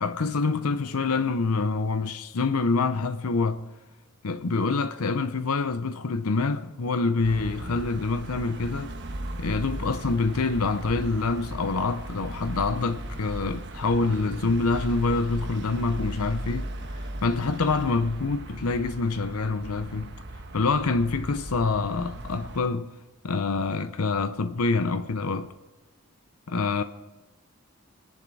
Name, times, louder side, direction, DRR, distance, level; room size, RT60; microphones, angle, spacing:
voice 1, 0.0-3.6 4.2-8.9 9.4-16.7 17.2-20.1 20.5-22.9 23.2-25.5 26.5-26.8, left 3 dB, 80° left, 0.7 m, -26 dB
sound 1, 7.2-22.6, right 1 dB, 50° right, 1.2 m, -37 dB
24.5 x 11.0 x 4.8 m
head